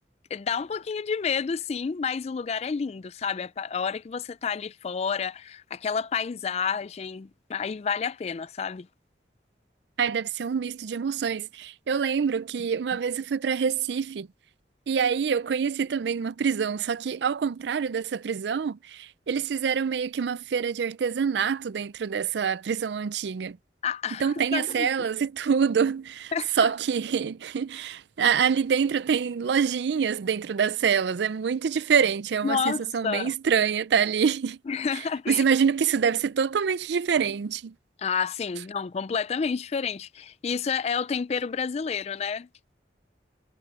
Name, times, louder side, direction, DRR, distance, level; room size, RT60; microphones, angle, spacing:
voice 1, 0.3-8.9 23.8-24.9 26.3-26.5 32.4-33.3 34.7-35.4 38.0-42.5, left 6 dB, 35° left, 0.3 m, -30 dB
voice 2, 10.0-14.3 14.9-23.6 24.2-34.6 34.9-37.7, right 6 dB, 75° right, 0.4 m, -26 dB
head